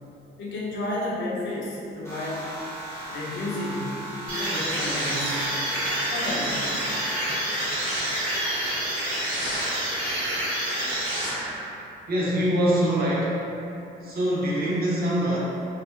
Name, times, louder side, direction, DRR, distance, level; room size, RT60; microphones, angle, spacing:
voice 1, 0.4-2.5 3.1-5.4 6.1-6.8 8.8-9.4 10.8-11.2, left 1 dB, 70° left, -6 dB, 0.7 m, -32 dB
sound 1, 2.0-8.2, right 1 dB, 15° left, 1.1 m, -38 dB
sound 2, 4.3-11.8, right 1 dB, 85° right, 1.1 m, -28 dB
voice 2, 12.1-13.5 14.0-15.4, equal, 50° right, -5 dB, 0.7 m, -24 dB
3.0 x 2.6 x 2.2 m, 2.8 s
cardioid pair, 90°, 20 cm